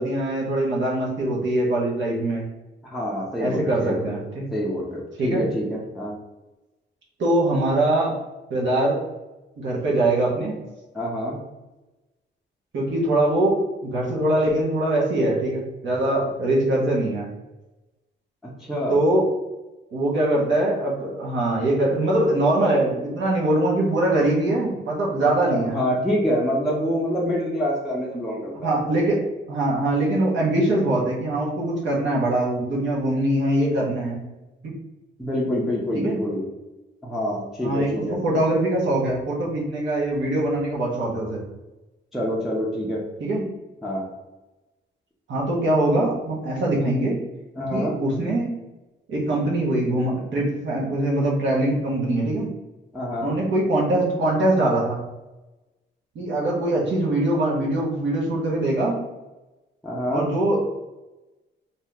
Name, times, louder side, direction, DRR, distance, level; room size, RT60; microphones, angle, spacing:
voice 1, 0.0-2.5 3.4-4.5 5.2-5.5 7.2-8.2 8.5-9.0 9.6-10.6 12.7-13.6 13.8-17.3 18.9-19.3 19.9-25.8 28.6-29.2 29.5-34.2 35.9-36.2 37.6-41.4 43.2-43.4 45.3-47.2 47.7-48.6 49.1-52.5 53.2-55.0 56.1-59.0 60.1-60.6, right 1 dB, 80° right, -4 dB, 1.1 m, -22 dB
voice 2, 2.9-4.1 4.5-6.1 10.9-11.4 18.6-19.0 25.2-28.7 35.2-36.4 37.0-38.2 42.1-43.0 43.8-44.1 47.6-48.0 52.9-53.3 59.8-60.3, equal, ahead, -6 dB, 0.5 m, -26 dB
2.8 x 2.7 x 3.5 m, 1.1 s
wide cardioid pair, 170°, 19 cm